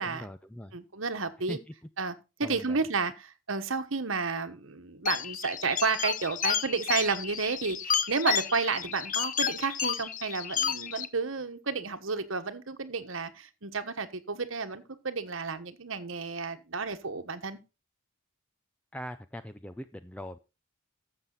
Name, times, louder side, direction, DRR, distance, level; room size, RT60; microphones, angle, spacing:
voice 1, 0.0-0.8 1.5-1.6 2.4-2.8 18.9-20.4, left 1 dB, 5° left, 10 dB, 0.4 m, -41 dB
voice 2, 0.7-1.6 2.0-17.6, right 4 dB, 70° right, 9 dB, 1.2 m, -31 dB
sound 1, 5.1-11.1, left 8 dB, 40° left, 0.7 m, -31 dB
12.5 x 7.4 x 3.9 m, 0.28 s
head